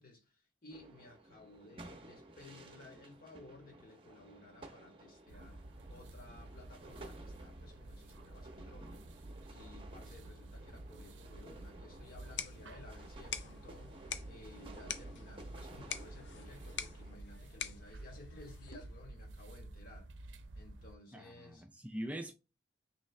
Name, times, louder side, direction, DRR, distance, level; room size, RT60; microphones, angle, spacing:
voice 1, 0.0-20.1 20.5-21.6, left 2 dB, 50° left, 1.3 m, -57 dB
sound 1, 0.7-17.1, right 2 dB, 30° right, 0.7 m, -55 dB
sound 2, 5.3-21.0, right 2 dB, 90° right, 0.5 m, -51 dB
sound 3, 12.1-19.0, left 8 dB, 85° left, 0.5 m, -46 dB
voice 2, 21.1-22.3, right 1 dB, 10° right, 0.4 m, -43 dB
3.7 x 3.1 x 3.2 m
head